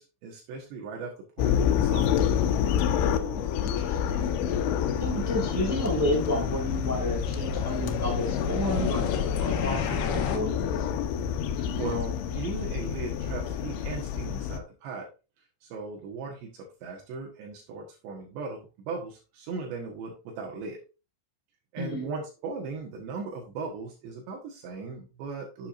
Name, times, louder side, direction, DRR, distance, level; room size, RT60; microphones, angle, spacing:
voice 1, 0.0-2.1 5.2-5.4 11.5-15.1 15.6-20.8 21.7-25.7, right 4 dB, 75° right, 0 dB, 3.5 m, -38 dB
sound 1, 1.4-14.6, left 8 dB, 90° left, 3.3 m, -28 dB
voice 2, 3.0-4.3 5.0-10.9 21.8-22.1, equal, 10° right, -1 dB, 0.8 m, -31 dB
sound 2, 3.4-10.4, left 6 dB, 65° left, 2.9 m, -33 dB
10.5 x 7.8 x 2.6 m, 0.30 s
omnidirectional pair, 5.3 m